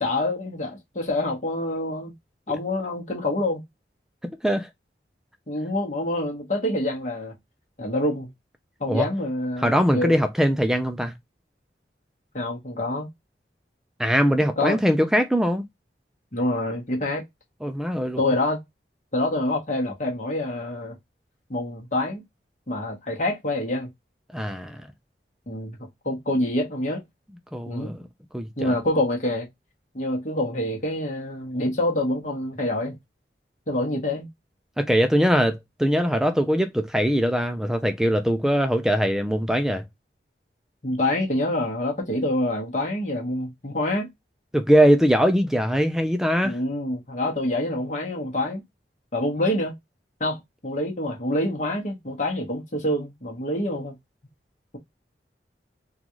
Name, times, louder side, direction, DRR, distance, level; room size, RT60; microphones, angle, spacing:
voice 1, 0.0-2.1 2.5-3.6 5.5-7.3 7.8-8.3 8.8-10.2 12.3-13.1 14.6-14.8 16.3-17.2 18.2-18.6 19.1-20.9 21.5-22.2 22.7-23.9 25.5-25.8 26.0-27.0 27.7-27.9 28.6-29.5 29.9-33.0 33.7-34.3 40.8-44.1 46.4-48.6 49.1-49.7 50.2-50.4 50.6-53.9, left 1 dB, 45° left, 1.1 m, -26 dB
voice 2, 4.2-4.7 8.9-9.0 9.6-11.1 14.0-15.6 17.6-18.3 24.3-24.8 27.5-28.0 28.3-28.7 34.8-39.8 44.5-46.6, equal, 5° right, 0.3 m, -21 dB
3.8 x 2.4 x 2.9 m
head